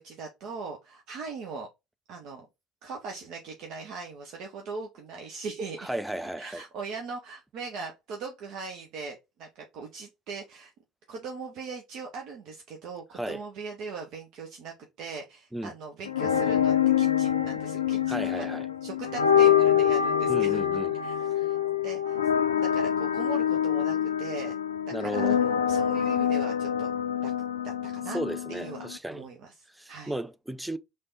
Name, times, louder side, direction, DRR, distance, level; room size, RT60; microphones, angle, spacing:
voice 1, 0.0-1.7 2.1-2.5 2.8-10.7 11.1-21.6 21.8-22.2 22.6-24.5 25.0-26.9 27.2-27.3 27.6-28.2 28.5-30.1, right 4 dB, 50° right, 0.8 m, -40 dB
voice 2, 5.8-6.6 13.1-13.4 15.5-15.7 18.1-18.7 20.3-20.9 24.9-25.4 28.1-29.2 29.7-30.8, right 1 dB, 5° right, 0.5 m, -34 dB
sound 1, 16.0-29.0, left 9 dB, 75° left, 0.4 m, -25 dB
3.4 x 3.3 x 4.0 m
figure-of-eight pair, 60°, 0 cm